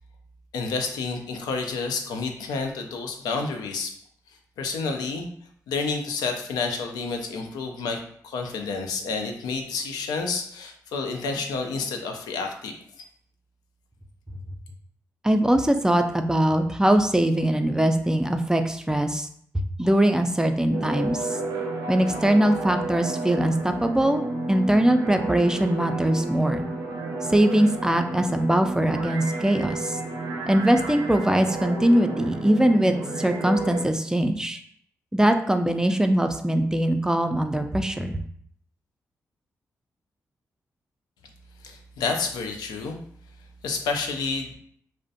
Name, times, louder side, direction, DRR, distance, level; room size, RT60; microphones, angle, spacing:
voice 1, 0.5-3.9 4.6-5.3 5.7-12.7 41.6-43.0 43.6-44.6, left 4 dB, 85° left, 3 dB, 0.3 m, -29 dB
voice 2, 15.2-19.3 19.5-21.4 21.9-26.7 27.3-30.0 30.5-34.6 35.1-38.2, right 1 dB, 10° right, 6 dB, 0.3 m, -22 dB
sound 1, 20.7-33.8, right 2 dB, 80° right, 0.5 m, -32 dB
2.5 x 2.1 x 2.6 m, 0.63 s
supercardioid pair, 50°, 7 cm